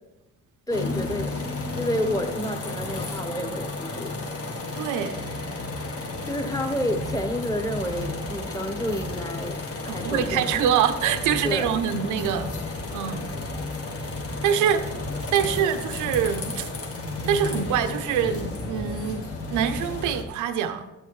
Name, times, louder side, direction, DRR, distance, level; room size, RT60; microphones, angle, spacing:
sound 1, 0.7-20.2, left 3 dB, 50° left, 1.6 m, -32 dB
voice 1, 0.7-1.4 1.7-4.3 6.2-10.6 11.4-11.7 15.4-15.7, equal, 10° left, 6 dB, 1.1 m, -30 dB
voice 2, 4.7-5.2 9.9-12.5 12.9-13.3 14.4-14.9 15.3-16.7 17.3-19.2 19.5-20.9, right 8 dB, 85° right, 9 dB, 0.7 m, -25 dB
11.0 x 8.9 x 3.1 m, 1.0 s
cardioid pair, 90°, 30 cm